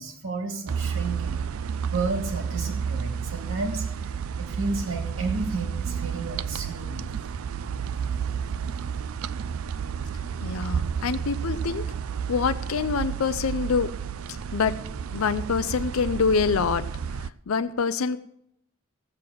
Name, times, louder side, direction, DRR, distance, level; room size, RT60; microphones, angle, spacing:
voice 1, 0.0-1.4 1.8-7.1 7.6-7.7, right 3 dB, 70° right, 3 dB, 2.3 m, -32 dB
sound 1, 0.7-17.3, right 7 dB, 85° right, 0.4 m, -31 dB
voice 2, 10.4-11.8 12.3-13.9 14.3-14.7 15.1-16.8 17.5-18.2, left 5 dB, 85° left, 11 dB, 0.5 m, -25 dB
16.0 x 7.7 x 6.2 m, 0.75 s
head